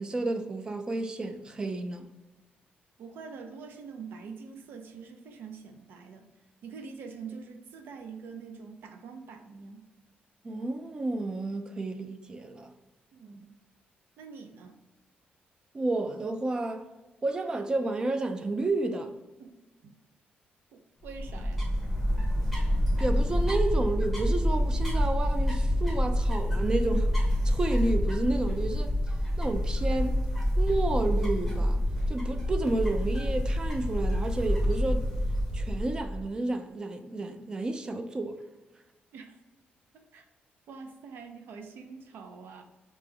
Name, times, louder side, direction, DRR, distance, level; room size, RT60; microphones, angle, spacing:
voice 1, 0.0-2.1 10.4-12.7 15.7-16.9 17.2-19.1 23.0-27.1 27.4-28.9 29.4-30.2 30.6-35.1 35.5-38.4, right 2 dB, 20° right, 0.3 m, -31 dB
voice 2, 3.0-6.3 6.6-9.8 13.1-13.5 14.2-14.8 19.4-19.6 19.8-19.9 20.7-21.6 39.1-39.4 39.9-40.2 40.7-42.6, right 5 dB, 75° right, 0.6 m, -45 dB
sound 1, 21.0-36.3, equal, 5° right, 1.0 m, -27 dB
3.3 x 2.9 x 3.5 m
cardioid pair, 155°, 4 cm